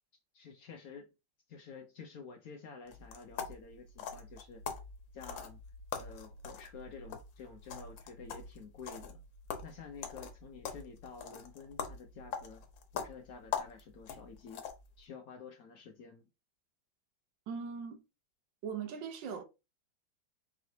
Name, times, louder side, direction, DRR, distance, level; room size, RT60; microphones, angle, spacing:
voice 1, 0.3-1.1 1.5-4.6 5.1-5.6 6.0-9.2 9.6-12.6 12.9-14.7 15.0-16.3, left 5 dB, 65° left, 0.9 m, -50 dB
sound 1, 2.9-15.0, left 7 dB, 85° left, 1.5 m, -43 dB
voice 2, 17.5-18.0 18.6-19.4, right 6 dB, 80° right, 1.4 m, -40 dB
4.8 x 3.0 x 2.7 m
omnidirectional pair, 2.0 m